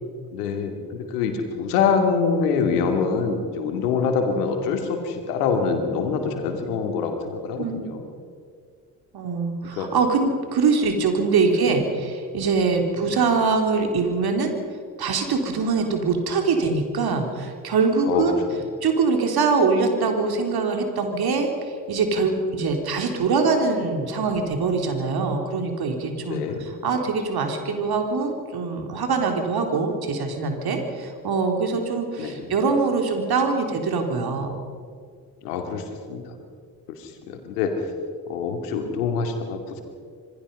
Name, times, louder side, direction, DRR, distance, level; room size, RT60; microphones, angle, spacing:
voice 1, 0.3-8.1 9.8-9.9 18.0-18.6 26.3-26.6 32.2-32.5 35.4-36.3 37.0-37.7 38.3-39.8, left 5 dB, 80° left, 5 dB, 2.6 m, -25 dB
voice 2, 9.1-14.5 15.0-18.4 18.8-34.6, right 4 dB, 55° right, 4 dB, 3.7 m, -23 dB
26.5 x 20.0 x 5.5 m, 2.2 s
figure-of-eight pair, 45°, 45 cm